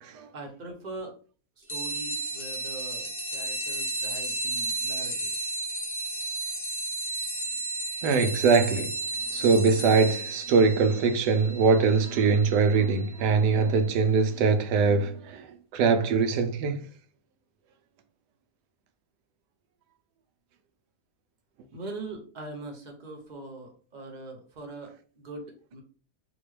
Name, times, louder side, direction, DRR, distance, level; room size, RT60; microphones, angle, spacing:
voice 1, 0.3-1.1 1.6-5.3 21.7-25.8, right 2 dB, 40° right, 0.7 m, -41 dB
sound 1, 1.7-13.8, right 2 dB, 20° left, 0.9 m, -33 dB
voice 2, 8.0-8.9 9.3-16.9, right 4 dB, 85° right, 1.2 m, -22 dB
4.1 x 2.4 x 3.1 m
omnidirectional pair, 1.7 m